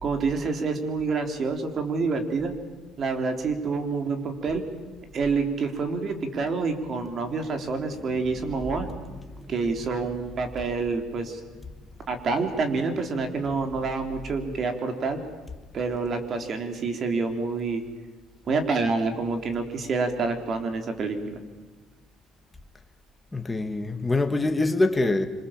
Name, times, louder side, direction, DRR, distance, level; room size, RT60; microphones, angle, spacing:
voice 1, 0.0-2.5 3.0-4.6 5.1-8.9 9.5-11.4 12.1-15.2 15.7-17.8 18.5-21.4, right 4 dB, 40° right, 3.6 m, -27 dB
voice 2, 23.3-25.3, left 2 dB, 10° left, 1.9 m, -25 dB
26.5 x 26.5 x 7.5 m
cardioid pair, 145°, 0 cm